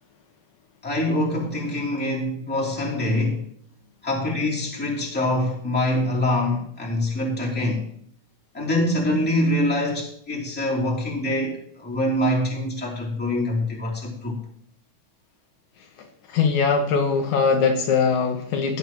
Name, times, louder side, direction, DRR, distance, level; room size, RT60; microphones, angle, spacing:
voice 1, 0.8-3.4 4.0-7.8 8.5-14.4, left 1 dB, 5° left, 2.6 m, -24 dB
voice 2, 16.3-18.8, left 5 dB, 75° left, 2.2 m, -21 dB
16.0 x 7.3 x 3.0 m
omnidirectional pair, 3.6 m